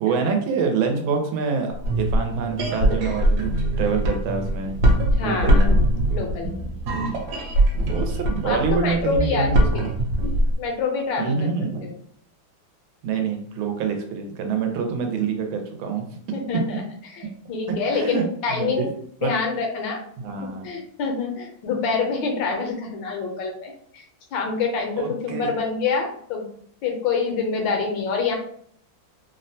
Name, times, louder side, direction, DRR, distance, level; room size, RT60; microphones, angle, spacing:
voice 1, 0.0-4.7 5.2-5.7 6.9-7.2 7.7-9.9 11.2-11.9 13.0-16.2 16.5-16.6 17.7-18.9 19.2-19.3 20.2-20.7 25.0-25.5, right 5 dB, 85° right, 4 dB, 1.4 m, -26 dB
sound 1, 1.7-10.5, right 1 dB, 70° right, 1.0 m, -22 dB
voice 2, 5.1-5.6 6.1-6.7 8.4-10.0 10.6-11.5 11.8-11.9 16.3-16.8 17.2-18.9 19.2-20.0 20.4-24.0 24.3-26.5 26.8-28.3, left 4 dB, 75° left, 2 dB, 1.3 m, -26 dB
3.4 x 2.1 x 2.6 m, 0.64 s
omnidirectional pair, 2.2 m